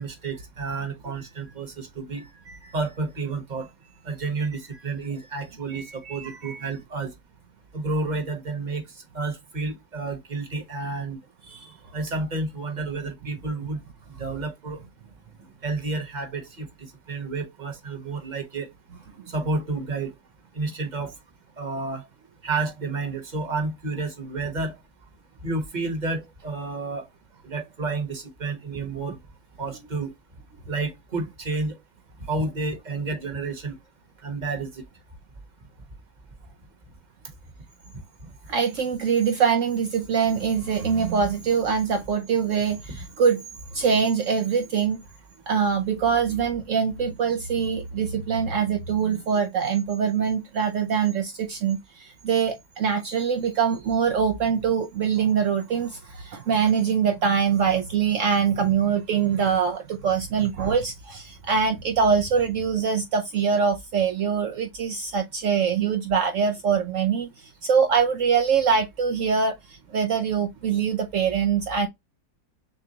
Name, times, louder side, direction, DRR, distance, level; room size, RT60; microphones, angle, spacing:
voice 1, 0.0-2.2 2.7-3.7 4.0-7.1 7.7-8.8 9.1-11.2 11.9-13.8 14.2-14.8 15.6-16.7 17.1-18.7 19.3-20.1 20.5-21.1 21.6-22.0 22.4-24.7 25.4-27.1 27.4-29.2 29.6-30.1 30.7-31.8 32.3-33.8 34.2-34.8, right 3 dB, 30° right, 1.2 m, -30 dB
voice 2, 5.7-6.7 11.5-11.7 38.5-43.5 43.7-45.0 45.5-71.9, right 6 dB, 65° right, 0.9 m, -24 dB
6.8 x 2.3 x 2.8 m
omnidirectional pair, 1.7 m